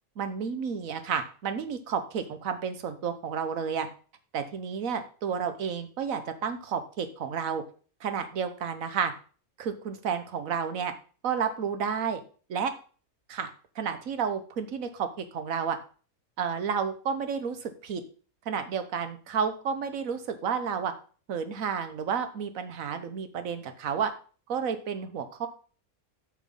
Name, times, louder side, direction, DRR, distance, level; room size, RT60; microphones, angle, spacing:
voice 1, 0.2-3.9 4.3-7.6 8.0-9.1 9.6-10.9 11.2-12.2 12.5-12.7 13.3-13.5 13.8-15.8 16.4-18.0 18.5-20.9 21.3-24.1 24.5-25.5, right 6 dB, 70° right, 9 dB, 1.4 m, -31 dB
7.9 x 6.2 x 5.4 m, 0.39 s
omnidirectional pair, 1.5 m